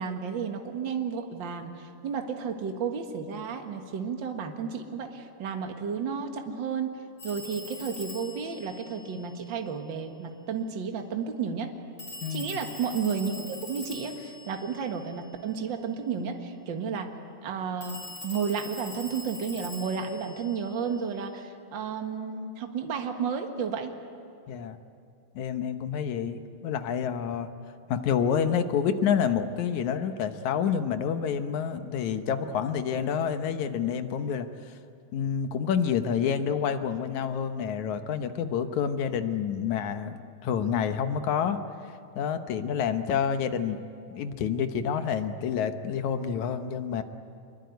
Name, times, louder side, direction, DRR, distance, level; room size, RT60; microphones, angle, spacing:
voice 1, 0.0-6.9 7.2-11.7 12.3-17.1 17.4-18.0 18.2-23.9, right 6 dB, 45° right, 4 dB, 2.1 m, -32 dB
Telephone, 7.2-9.8 12.0-15.6 17.8-21.3, left 2 dB, 45° left, 5.6 m, -43 dB
voice 2, 24.5-24.8 25.4-27.5 27.9-34.5 35.1-41.6 42.2-43.8 44.1-47.0, left 7 dB, 75° left, 8 dB, 2.4 m, -28 dB
25.5 x 22.5 x 9.4 m, 2.5 s
omnidirectional pair, 3.4 m